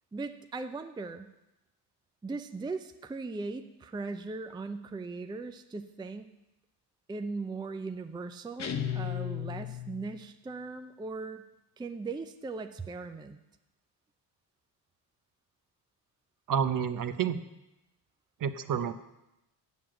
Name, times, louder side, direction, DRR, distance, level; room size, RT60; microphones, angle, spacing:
voice 1, 0.1-1.3 2.2-6.3 7.1-11.4 11.8-13.4, right 3 dB, 10° right, 8 dB, 0.5 m, -39 dB
sound 1, 8.6-10.3, left 9 dB, 40° left, 0.9 m, -35 dB
voice 2, 16.5-17.4 18.4-18.9, right 8 dB, 50° right, 10 dB, 0.8 m, -29 dB
7.8 x 7.2 x 7.5 m, 0.93 s
cardioid pair, 95°, 42 cm